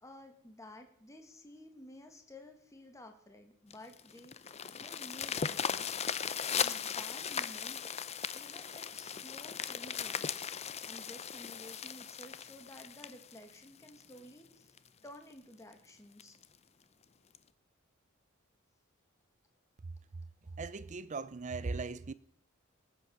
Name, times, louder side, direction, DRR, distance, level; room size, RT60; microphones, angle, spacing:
voice 1, 0.0-5.9 6.5-7.9 8.3-10.3 10.8-14.7 15.0-16.4 20.5-20.6, left 1 dB, 15° left, 1.9 m, -53 dB
sound 1, 3.7-14.2 14.8-14.9 15.3-15.4 15.7-15.8 16.2-16.5 17.3-17.4, left 7 dB, 30° left, 0.6 m, -38 dB
voice 2, 20.6-22.1, right 4 dB, 35° right, 0.5 m, -38 dB
19.5 x 8.6 x 6.5 m
head